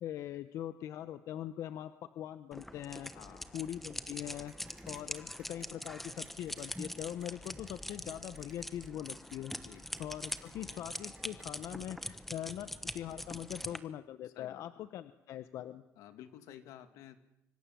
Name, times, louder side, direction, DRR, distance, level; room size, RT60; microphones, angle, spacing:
voice 1, 0.0-3.1 3.5-4.5 4.9-9.5 10.0-12.7 12.9-15.8, left 11 dB, 65° left, 12 dB, 1.1 m, -42 dB
sound 1, 2.5-13.8, left 1 dB, 5° left, 1.2 m, -44 dB
voice 2, 3.1-3.5 9.6-9.9 14.2-14.6 16.0-17.2, left 11 dB, 85° left, 9 dB, 2.6 m, -52 dB
sound 2, 4.5-11.7, right 4 dB, 20° right, 4.3 m, -62 dB
25.5 x 25.5 x 7.7 m, 0.82 s
cardioid pair, 150°, 6 cm